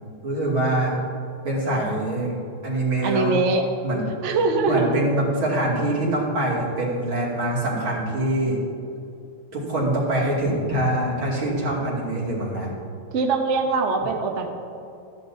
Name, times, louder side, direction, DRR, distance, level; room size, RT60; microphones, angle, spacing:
voice 1, 0.2-1.0 1.4-2.3 2.6-3.4 3.8-4.4 4.6-8.6 9.5-12.7, right 1 dB, 75° right, -6 dB, 3.3 m, -24 dB
voice 2, 3.0-3.6 4.2-5.0 13.1-14.6, right 3 dB, 55° right, 3 dB, 0.8 m, -22 dB
14.0 x 10.5 x 2.7 m, 2.6 s
omnidirectional pair, 2.3 m